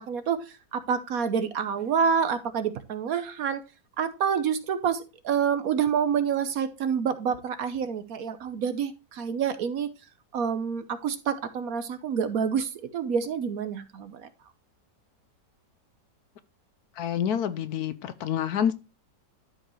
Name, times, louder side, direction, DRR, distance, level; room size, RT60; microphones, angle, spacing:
voice 1, 0.1-0.4 0.7-3.6 4.0-9.9 10.3-14.2, right 7 dB, 65° right, 1.1 m, -27 dB
voice 2, 17.0-18.7, left 9 dB, 70° left, 1.1 m, -27 dB
12.5 x 5.1 x 3.0 m
omnidirectional pair, 1.8 m